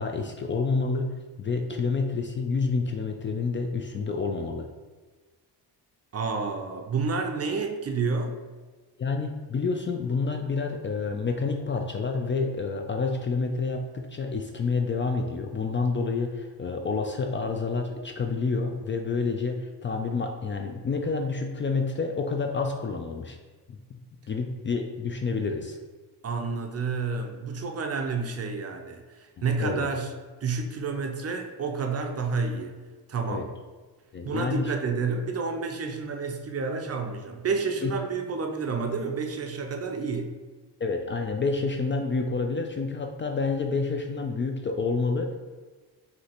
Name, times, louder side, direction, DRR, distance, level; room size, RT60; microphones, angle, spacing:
voice 1, 0.0-4.7 9.0-23.4 23.9-24.0 24.3-25.8 29.4-29.9 33.3-33.4 34.1-34.7 37.8-37.9 40.8-45.4, left 4 dB, 30° left, 4 dB, 0.4 m, -28 dB
voice 2, 6.1-8.4 26.2-30.1 30.4-32.7 33.1-33.5 34.2-40.4, right 4 dB, 40° right, 4 dB, 0.5 m, -30 dB
5.0 x 2.8 x 2.9 m, 1.3 s
cardioid pair, 90°, 39 cm